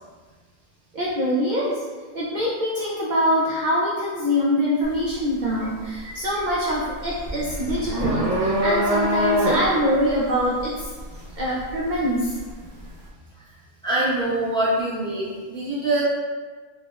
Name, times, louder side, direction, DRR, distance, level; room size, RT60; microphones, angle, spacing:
voice 1, 0.9-1.9 2.1-10.9 11.4-12.3, equal, 70° right, -5 dB, 0.4 m, -24 dB
sound 1, 4.8-5.1 5.5-12.5, equal, 45° right, 0.8 m, -25 dB
voice 2, 13.8-16.0, right 1 dB, 5° left, -9 dB, 0.5 m, -24 dB
4.5 x 2.1 x 2.3 m, 1.4 s
omnidirectional pair, 1.4 m